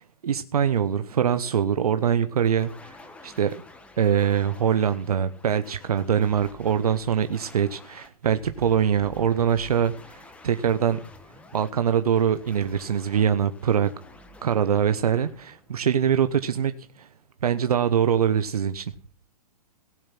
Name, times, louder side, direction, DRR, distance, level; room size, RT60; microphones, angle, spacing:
voice 1, 0.0-3.0 3.2-3.5 4.0-11.0 11.5-13.9 14.4-16.7 17.0-17.1 17.4-18.9, right 8 dB, 80° right, 10 dB, 1.0 m, -23 dB
sound 1, 2.4-16.3, left 2 dB, 5° left, 1.3 m, -49 dB
18.0 x 7.1 x 5.8 m, 0.41 s
hypercardioid pair, 145°, 19 cm